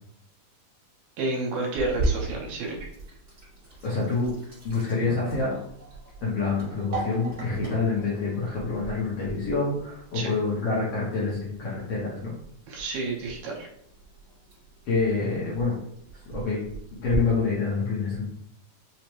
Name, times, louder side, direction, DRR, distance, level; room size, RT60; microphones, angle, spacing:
voice 1, 1.2-2.9 10.1-10.3 12.7-13.7, right 2 dB, 75° right, -2 dB, 2.1 m, -30 dB
Sink (filling or washing), 1.8-17.2, right 2 dB, 40° right, 1.1 m, -38 dB
voice 2, 3.8-4.3 4.6-5.6 6.2-12.3 14.9-15.8 16.3-16.6 17.0-18.3, left 4 dB, 70° left, -6 dB, 1.5 m, -27 dB
5.1 x 2.1 x 3.0 m, 0.74 s
omnidirectional pair, 3.6 m